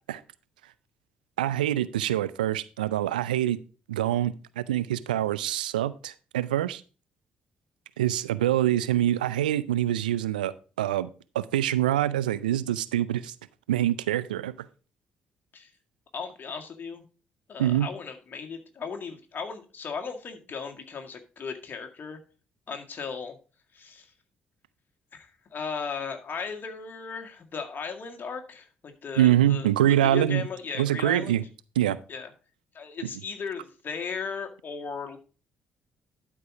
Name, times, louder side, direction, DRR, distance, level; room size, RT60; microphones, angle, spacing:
voice 1, 1.4-3.6 3.9-6.8 8.0-10.5 10.8-11.1 11.3-13.3 13.7-14.5 17.6-17.9 29.2-30.4 30.8-31.4 31.8-32.0, right 12 dB, 85° right, 17 dB, 0.4 m, -25 dB
voice 2, 16.1-17.0 17.5-22.2 22.7-23.4 23.7-24.1 25.1-31.4 32.1-32.3 32.7-35.2, left 5 dB, 45° left, 4 dB, 1.9 m, -36 dB
12.0 x 4.8 x 4.8 m, 0.35 s
hypercardioid pair, 45°, 5 cm